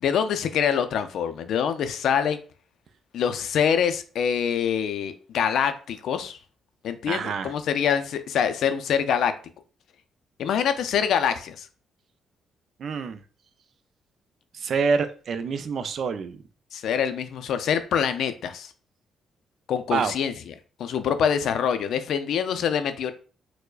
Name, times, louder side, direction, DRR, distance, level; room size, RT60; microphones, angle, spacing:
voice 1, 0.0-2.4 3.1-6.4 6.8-9.3 10.4-11.7 16.7-18.7 19.7-20.3 20.8-23.1, left 8 dB, 70° left, 0.4 m, -25 dB
voice 2, 7.1-7.5 12.8-13.2 14.5-16.4 19.9-20.1, right 5 dB, 60° right, 0.3 m, -27 dB
4.4 x 2.0 x 2.3 m
cardioid pair, 90°, 0 cm